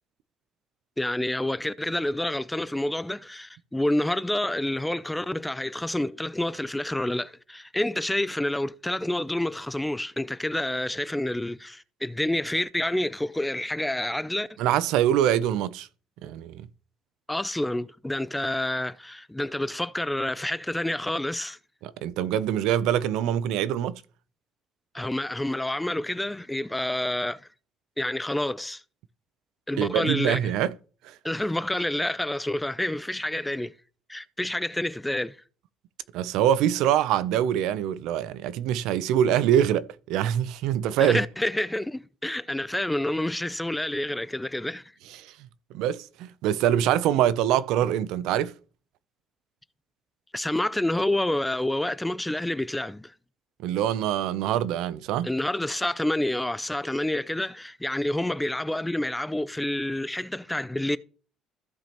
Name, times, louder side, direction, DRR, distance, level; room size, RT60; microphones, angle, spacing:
voice 1, 1.0-14.5 17.3-21.6 24.9-27.5 28.0-28.8 29.7-30.5 31.2-33.7 34.1-35.4 41.0-44.8 50.3-53.1 55.2-61.0, left 1 dB, 5° left, 0.3 m, -28 dB
voice 2, 14.6-15.9 16.2-16.7 21.8-24.0 29.8-30.7 31.0-31.1 36.1-41.2 45.2-45.3 45.7-48.5 53.6-55.3, right 10 dB, 75° right, 0.5 m, -24 dB
15.0 x 5.1 x 2.9 m
cardioid pair, 155°, 0 cm